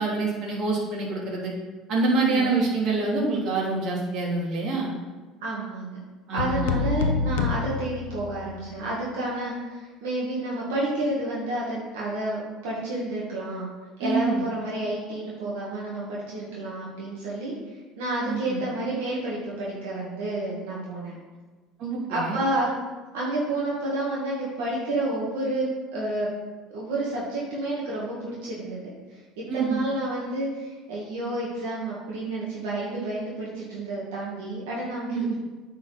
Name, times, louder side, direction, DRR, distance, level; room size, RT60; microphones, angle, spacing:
voice 1, 0.0-1.5 1.9-4.9 6.3-6.7 14.0-14.4 18.3-18.6 21.8-22.4 29.5-29.8 35.1-35.3, right 3 dB, 60° right, -3 dB, 2.8 m, -26 dB
voice 2, 5.4-6.0 6.3-13.7 14.0-17.5 18.0-21.2 22.1-22.7 23.1-26.3 26.7-28.9 29.4-35.3, right 2 dB, 85° right, -6 dB, 2.0 m, -30 dB
sound 1, 6.4-8.6, left 5 dB, 90° left, 0.5 m, -27 dB
9.1 x 4.7 x 5.1 m, 1.3 s
supercardioid pair, 85°, 0 cm